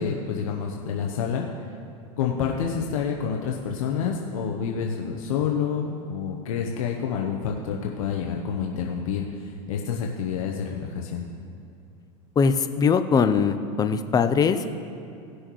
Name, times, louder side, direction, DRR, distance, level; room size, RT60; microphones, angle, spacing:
voice 1, 0.0-1.4 2.2-11.2, left 7 dB, 85° left, 0 dB, 0.9 m, -28 dB
voice 2, 12.4-14.7, left 5 dB, 20° left, 9 dB, 0.5 m, -21 dB
17.5 x 6.4 x 3.1 m, 2.5 s
supercardioid pair, 115°, 17 cm